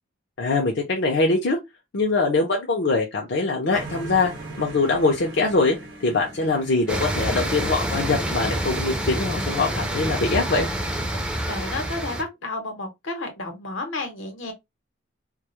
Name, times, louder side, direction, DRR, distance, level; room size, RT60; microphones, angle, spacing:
voice 1, 0.4-1.6 1.9-4.3 4.6-5.8 6.0-10.7, left 3 dB, 60° left, 0.5 m, -23 dB
sound 1, 3.7-9.4, right 2 dB, 55° right, 0.7 m, -41 dB
sound 2, 6.9-12.2, right 1 dB, 5° right, 0.4 m, -27 dB
voice 2, 11.5-14.5, left 2 dB, 85° left, 0.9 m, -31 dB
2.2 x 2.0 x 2.8 m
head